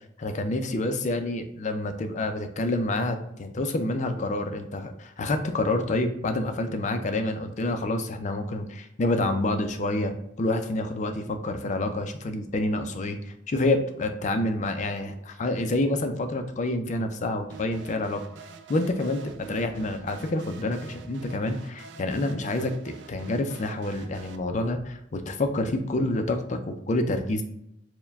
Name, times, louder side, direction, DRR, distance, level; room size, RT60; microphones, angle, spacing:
voice 1, 0.2-18.2 18.7-27.4, left 2 dB, 40° left, 7 dB, 0.4 m, -28 dB
sound 1, 17.5-24.4, right 4 dB, 70° right, 0.4 m, -46 dB
4.5 x 2.2 x 3.4 m, 0.76 s
head